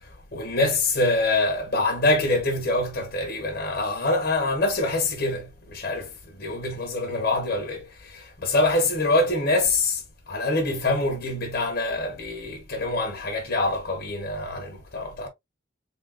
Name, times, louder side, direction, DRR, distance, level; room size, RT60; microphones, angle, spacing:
voice 1, 0.3-15.3, left 2 dB, 50° left, 1.4 m, -25 dB
3.9 x 3.7 x 2.2 m
head